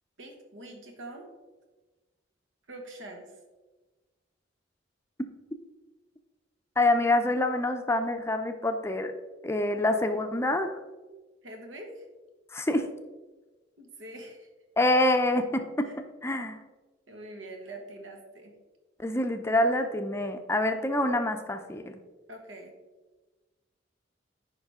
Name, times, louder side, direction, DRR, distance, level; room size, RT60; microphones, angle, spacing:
voice 1, 0.2-1.3 2.7-3.4 11.4-12.0 13.8-14.5 15.8-16.0 17.1-18.5 22.3-22.8, right 1 dB, 85° right, 3 dB, 1.5 m, -44 dB
voice 2, 6.8-9.1 9.4-10.7 12.5-12.9 14.8-15.9 16.2-16.6 19.0-22.0, left 1 dB, 15° left, 7 dB, 0.5 m, -26 dB
9.7 x 5.2 x 3.6 m, 1.2 s
head